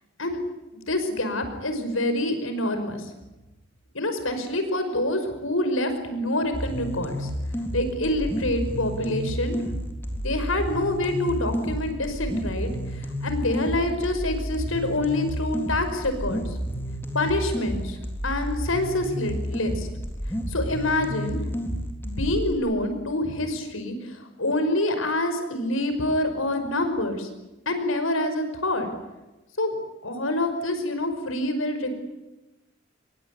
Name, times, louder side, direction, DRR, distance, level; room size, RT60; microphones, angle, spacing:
voice 1, 0.7-3.0 3.9-7.3 7.7-9.6 10.1-16.4 17.1-18.0 18.2-19.9 20.5-21.4 22.0-27.3 27.7-28.9 29.6-29.8 30.0-32.0, left 1 dB, 80° left, 8 dB, 5.6 m, -26 dB
sound 1, 6.5-22.5, equal, 10° left, 3.9 m, -31 dB
26.0 x 22.5 x 9.7 m, 1.1 s
head